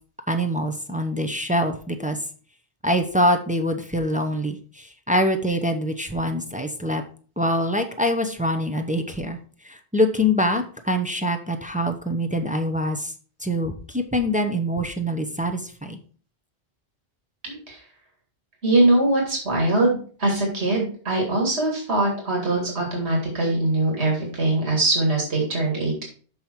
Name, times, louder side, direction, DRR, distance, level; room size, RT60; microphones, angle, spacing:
voice 1, 0.3-2.2 2.8-7.0 7.4-9.4 9.6-13.1 13.4-16.0, equal, 10° right, 5 dB, 0.6 m, -24 dB
voice 2, 17.4-17.8 18.6-26.0, right 2 dB, 85° right, 0 dB, 2.4 m, -22 dB
6.6 x 5.5 x 4.5 m, 0.43 s
omnidirectional pair, 1.1 m